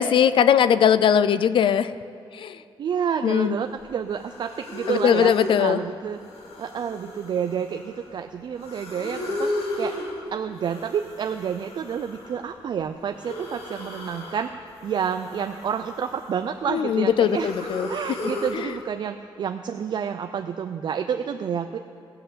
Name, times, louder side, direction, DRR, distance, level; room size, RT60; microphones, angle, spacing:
voice 1, 0.0-1.9 2.3-2.6 3.2-3.5 4.9-5.8 16.7-17.9 18.5-18.7, left 8 dB, 60° left, 14 dB, 0.4 m, -20 dB
voice 2, 2.8-6.2 6.6-10.0 10.3-21.8, right 7 dB, 55° right, 6 dB, 0.4 m, -29 dB
sound 1, 3.8-3.9 4.1-5.7 6.1-8.1 8.5-10.2 10.6-12.5 13.1-14.5 14.8-16.6 16.9-18.6, left 1 dB, 85° left, 2.3 m, -35 dB
15.5 x 7.8 x 6.9 m, 2.5 s
wide cardioid pair, 180°, 9 cm